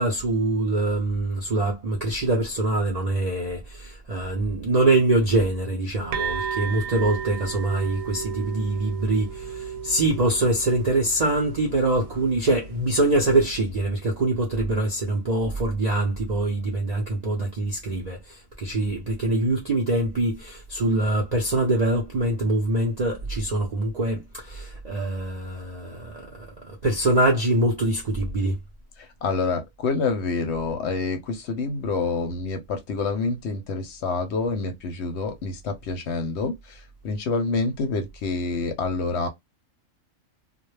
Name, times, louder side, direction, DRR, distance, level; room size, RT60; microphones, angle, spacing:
voice 1, 0.0-28.6, right 2 dB, 55° right, 0.4 m, -24 dB
sound 1, 6.1-13.6, right 6 dB, 90° right, 1.0 m, -35 dB
voice 2, 29.0-39.3, left 4 dB, 65° left, 0.8 m, -27 dB
2.2 x 2.0 x 3.1 m
omnidirectional pair, 1.4 m